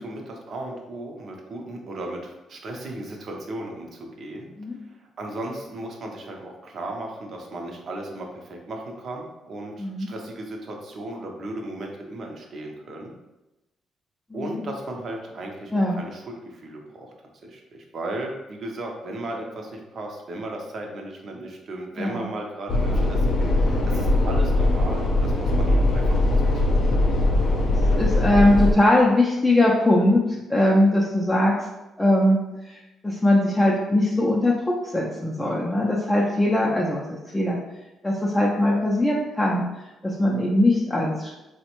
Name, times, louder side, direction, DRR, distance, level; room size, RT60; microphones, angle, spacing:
voice 1, 0.0-4.5 5.0-13.1 14.3-17.1 17.4-26.3 26.5-26.6, right 1 dB, 55° right, 1 dB, 0.6 m, -36 dB
voice 2, 22.0-22.3 27.7-31.7 32.0-37.0 37.3-37.6 38.0-39.6 40.0-41.3, left 1 dB, 10° left, -4 dB, 0.4 m, -21 dB
sound 1, 22.7-28.7, left 2 dB, 60° left, 0.6 m, -21 dB
3.3 x 2.1 x 2.9 m, 1.0 s
cardioid pair, 90°, 0 cm